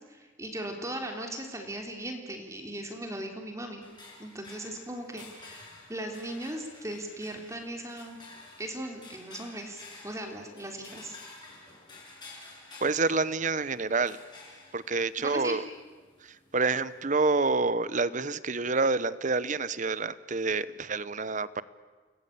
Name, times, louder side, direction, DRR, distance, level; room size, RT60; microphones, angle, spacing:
voice 1, 0.0-3.9 4.2-8.2 8.6-11.2 15.2-15.6, right 1 dB, 15° right, 3 dB, 3.3 m, -38 dB
sound 1, 3.8-17.0, left 3 dB, 20° left, 6.4 m, -51 dB
voice 2, 12.8-14.2 14.7-15.6 16.2-21.6, right 3 dB, 40° right, 17 dB, 0.9 m, -28 dB
30.0 x 22.0 x 8.7 m, 1.4 s
head